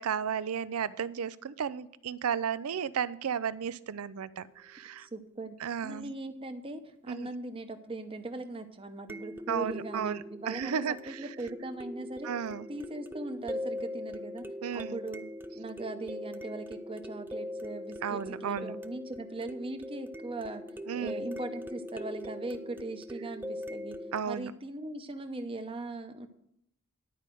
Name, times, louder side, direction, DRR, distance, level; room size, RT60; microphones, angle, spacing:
voice 1, 0.0-5.1 5.6-6.1 7.1-7.3 9.5-11.2 12.2-12.7 14.6-15.0 18.0-18.8 20.9-21.3 24.1-24.5, right 7 dB, 75° right, 17 dB, 0.5 m, -34 dB
voice 2, 5.0-5.5 5.8-10.7 11.0-12.3 12.7-14.4 14.7-15.2 15.5-20.6 20.9-24.0 24.2-26.3, right 2 dB, 25° right, 7 dB, 0.8 m, -39 dB
sound 1, 9.1-24.2, left 1 dB, 10° right, 0.4 m, -41 dB
11.0 x 4.9 x 7.6 m, 0.76 s
head